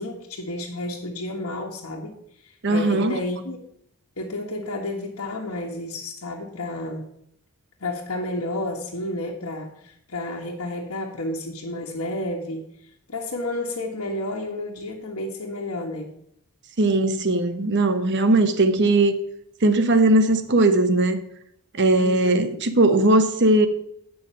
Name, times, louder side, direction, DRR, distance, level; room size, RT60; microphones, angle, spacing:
voice 1, 0.0-2.2 2.4-3.6 4.2-7.1 7.8-12.6 13.1-16.1 21.9-22.5, left 1 dB, 75° left, 1.4 m, -31 dB
voice 2, 2.6-3.1 16.8-19.1 19.6-21.2 21.8-23.7, right 2 dB, 55° right, 0.9 m, -19 dB
9.1 x 5.6 x 5.5 m
head